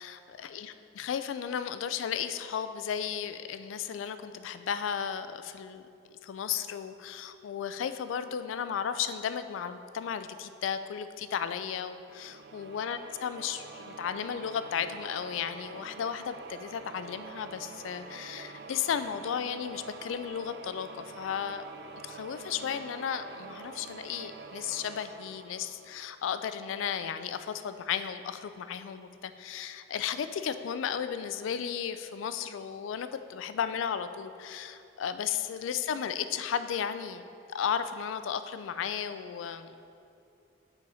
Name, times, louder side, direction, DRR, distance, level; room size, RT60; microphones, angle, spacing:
voice 1, 0.0-5.8 6.2-20.9 21.1-21.6 22.0-37.2 37.5-39.7, left 8 dB, 85° left, 11 dB, 0.3 m, -34 dB
sound 1, 12.1-26.7, right 4 dB, 55° right, 0.3 m, -47 dB
6.7 x 4.1 x 4.8 m, 2.6 s
head